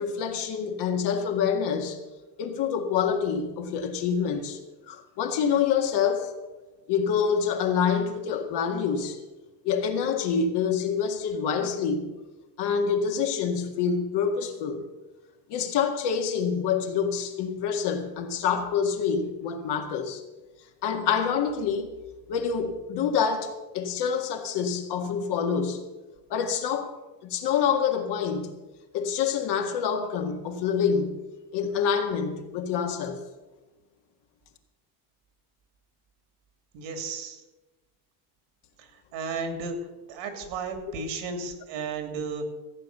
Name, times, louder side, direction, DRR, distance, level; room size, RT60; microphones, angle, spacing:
voice 1, 0.0-2.0 2.4-4.6 4.9-6.3 6.9-9.2 9.6-12.1 12.6-14.8 15.5-20.2 20.8-21.9 22.3-25.8 26.3-26.9 27.2-28.5 28.9-31.2 31.5-33.2, left 7 dB, 55° left, 5 dB, 1.9 m, -26 dB
voice 2, 36.7-37.4 38.8-39.8 40.1-42.5, right 4 dB, 75° right, 6 dB, 3.0 m, -34 dB
15.0 x 8.6 x 6.7 m, 1.1 s
cardioid pair, 150°, 47 cm